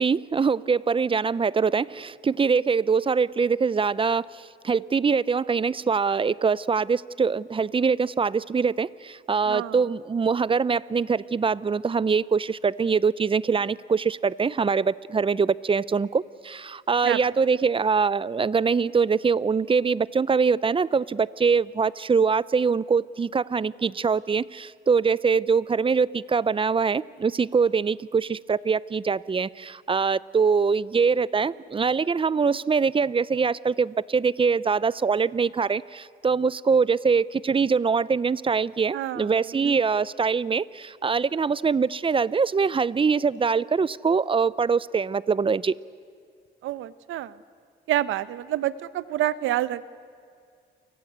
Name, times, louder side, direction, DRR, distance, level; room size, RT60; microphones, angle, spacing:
voice 1, 0.0-45.8, right 5 dB, 25° right, 20 dB, 0.6 m, -23 dB
voice 2, 9.5-9.8 17.0-17.2 38.9-39.3 39.6-39.8 46.6-47.3 47.9-49.8, right 13 dB, 85° right, 16 dB, 0.9 m, -27 dB
30.0 x 24.5 x 8.2 m, 2.3 s
cardioid pair, 90°, 20 cm